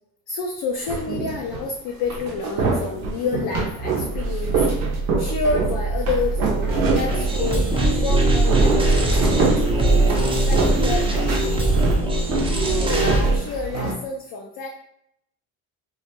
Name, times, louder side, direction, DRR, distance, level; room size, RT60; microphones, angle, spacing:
voice 1, 0.3-11.9 12.7-14.7, left 4 dB, 60° left, 1 dB, 0.5 m, -29 dB
sound 1, 0.9-1.7 2.0-8.0 8.3-11.0 11.2-13.9, right 4 dB, 90° right, 0.6 m, -25 dB
sound 2, 4.0-13.9, right 3 dB, 40° right, 0.8 m, -25 dB
sound 3, 7.1-13.4, right 1 dB, 15° right, 0.4 m, -21 dB
2.2 x 2.0 x 2.8 m, 0.79 s
supercardioid pair, 65°, 42 cm